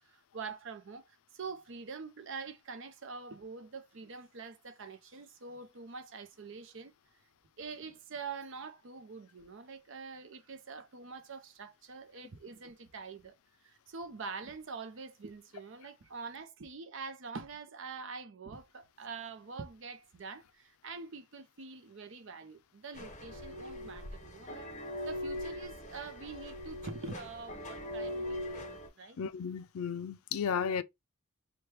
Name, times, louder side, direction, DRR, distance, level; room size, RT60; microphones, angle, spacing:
voice 1, 0.0-6.9 7.6-13.4 13.6-24.7 25.0-28.6 29.0-29.2, right 4 dB, 55° right, 0.6 m, -45 dB
sound 1, 22.9-28.9, left 1 dB, 30° left, 0.7 m, -41 dB
voice 2, 29.2-30.8, left 7 dB, 75° left, 0.4 m, -34 dB
3.2 x 2.2 x 4.3 m
head